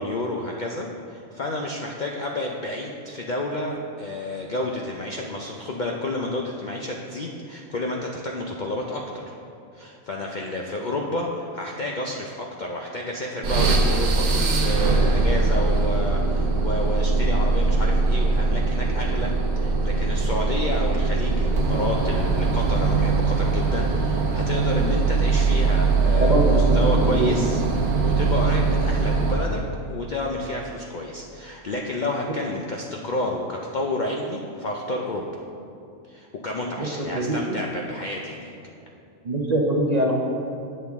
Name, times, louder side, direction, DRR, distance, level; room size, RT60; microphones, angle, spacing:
voice 1, 0.0-9.4 9.7-29.6 29.9-35.4 36.1-38.5, left 2 dB, 55° left, 0 dB, 0.5 m, -30 dB
sound 1, 13.4-29.6, right 3 dB, 60° right, 1.1 m, -21 dB
voice 2, 26.2-27.3 36.8-37.6 39.2-40.1, right 1 dB, 40° right, -1 dB, 0.7 m, -23 dB
8.3 x 7.5 x 3.5 m, 2.6 s
omnidirectional pair, 1.4 m